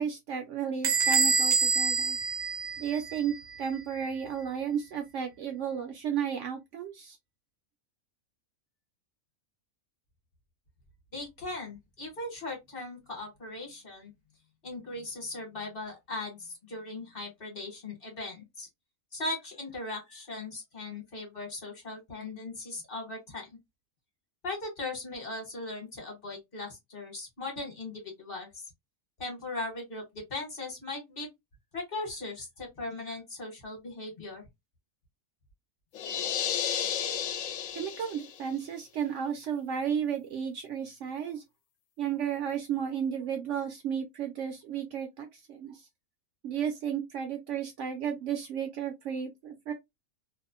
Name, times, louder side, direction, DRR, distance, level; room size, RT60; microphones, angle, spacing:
voice 1, 0.0-2.2 2.8-7.2 37.8-41.4 42.0-45.9 46.4-49.7, right 8 dB, 70° right, 0.8 m, -33 dB
Bell / Door, 0.8-3.3, right 5 dB, 90° right, 1.1 m, -26 dB
voice 2, 11.1-14.1 14.6-18.7 19.1-23.6 24.4-28.6 29.2-31.3 31.7-34.4, left 2 dB, 45° left, 1.1 m, -39 dB
sound 1, 35.9-38.5, left 9 dB, 70° left, 0.9 m, -32 dB
2.7 x 2.1 x 2.4 m
omnidirectional pair, 1.5 m